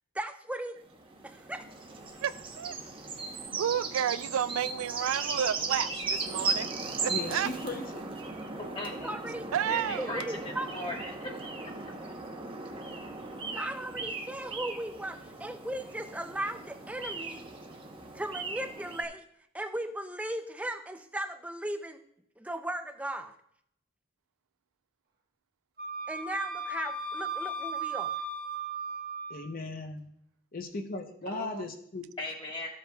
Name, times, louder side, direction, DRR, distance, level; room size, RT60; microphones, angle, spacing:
voice 1, 0.1-0.8 1.2-1.7 9.0-9.4 10.0-10.7 13.5-17.5 18.1-19.2 19.5-22.0 22.4-23.4 26.1-28.2, right 1 dB, 5° right, 0.4 m, -37 dB
sound 1, 0.8-19.0, right 3 dB, 25° right, 0.8 m, -37 dB
voice 2, 2.2-2.8 3.6-6.7 7.0-7.5 9.5-10.2 31.3-31.7, right 9 dB, 75° right, 0.3 m, -31 dB
voice 3, 7.1-8.1 29.3-30.1 30.5-32.0, left 3 dB, 40° left, 0.7 m, -37 dB
voice 4, 8.7-9.1 9.7-11.3 32.2-32.7, left 1 dB, 25° left, 1.4 m, -38 dB
Wind instrument woodwind instrument, 25.8-29.4, right 3 dB, 45° right, 1.0 m, -36 dB
13.5 x 7.4 x 2.3 m
head